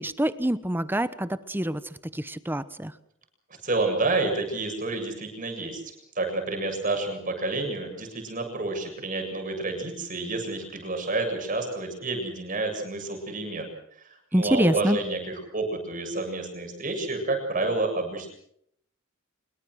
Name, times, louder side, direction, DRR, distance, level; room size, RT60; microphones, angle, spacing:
voice 1, 0.0-2.9 14.3-15.0, right 1 dB, 10° right, 13 dB, 1.0 m, -26 dB
voice 2, 3.6-5.8 6.2-13.7 14.3-18.3, right 2 dB, 40° right, 4 dB, 7.2 m, -29 dB
26.0 x 22.5 x 6.4 m, 0.71 s
head